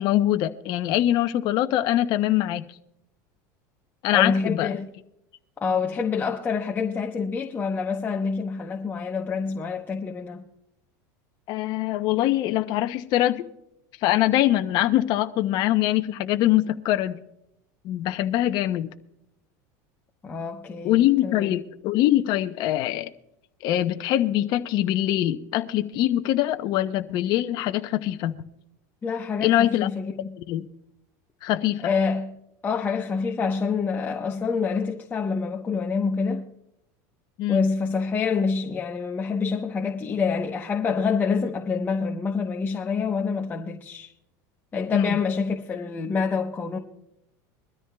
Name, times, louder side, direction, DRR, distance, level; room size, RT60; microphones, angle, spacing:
voice 1, 0.0-2.6 4.0-4.7 11.5-13.5 14.0-17.2 17.8-18.9 20.8-23.1 23.6-28.3 29.4-29.9 30.5-30.6 31.4-31.8 37.4-37.6 44.9-45.2, left 13 dB, 50° left, 0.7 m, -23 dB
voice 2, 4.1-4.9 5.6-10.4 20.2-21.5 29.0-30.3 31.8-32.3 32.6-36.5 37.5-44.1 44.7-46.8, left 5 dB, 20° left, 1.0 m, -27 dB
22.5 x 13.5 x 2.3 m
supercardioid pair, 135°, 9 cm